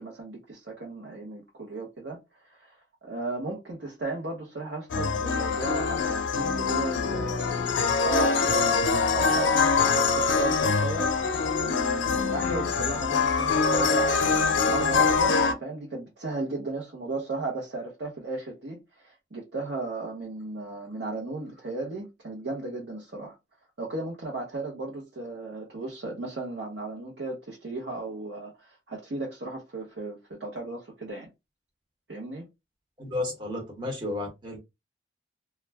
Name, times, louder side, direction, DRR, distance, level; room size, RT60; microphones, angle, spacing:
voice 1, 0.0-2.2 2.4-11.1 11.6-23.4 23.8-31.3 32.1-32.5, right 2 dB, 70° right, 0.8 m, -35 dB
sound 1, 4.9-15.5, left 5 dB, 85° left, 0.5 m, -24 dB
voice 2, 33.0-34.6, left 2 dB, 25° right, 1.0 m, -32 dB
2.3 x 2.1 x 3.3 m
head